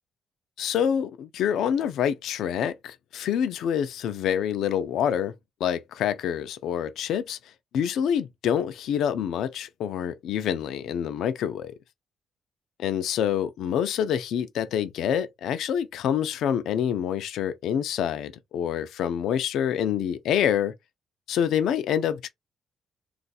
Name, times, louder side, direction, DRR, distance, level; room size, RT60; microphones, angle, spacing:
voice 1, 0.6-5.3 5.6-7.4 7.7-11.7 12.8-20.7 21.3-22.3, left 9 dB, 80° left, 0.5 m, -26 dB
2.6 x 2.4 x 4.0 m
cardioid pair, 90°, 0 cm